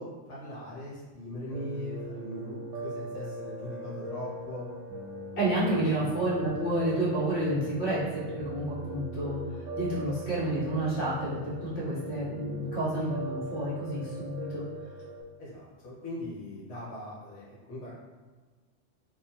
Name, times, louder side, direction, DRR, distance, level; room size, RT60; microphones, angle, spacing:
voice 1, 0.0-4.7 5.8-6.1 15.4-18.0, left 1 dB, 75° left, -7 dB, 1.2 m, -40 dB
Piano, 1.5-15.2, right 1 dB, 80° right, 1.0 m, -40 dB
voice 2, 5.4-9.4 9.7-14.6, right 1 dB, 40° left, -9 dB, 1.2 m, -30 dB
2.7 x 2.3 x 2.7 m, 1.3 s
omnidirectional pair, 1.3 m